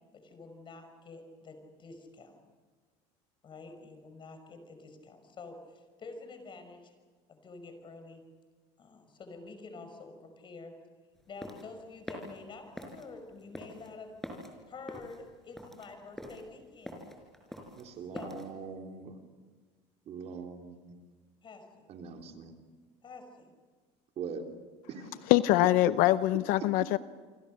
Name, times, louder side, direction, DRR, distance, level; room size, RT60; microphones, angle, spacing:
voice 1, 0.1-2.4 3.4-6.9 7.3-8.2 8.8-10.7 11.3-14.1 14.7-17.1 18.1-18.5 21.4-21.9 23.0-23.5, left 3 dB, 35° left, 7 dB, 5.8 m, -48 dB
sound 1, 11.2-18.5, equal, ahead, 5.3 m, -45 dB
voice 2, 17.8-19.1 20.1-21.0 21.9-22.5 24.2-24.4 24.9-25.2, right 5 dB, 45° right, 3 dB, 3.4 m, -42 dB
voice 3, 25.3-27.0, left 16 dB, 70° left, 14 dB, 0.7 m, -24 dB
28.5 x 25.0 x 6.6 m, 1.5 s
cardioid pair, 125°, 15 cm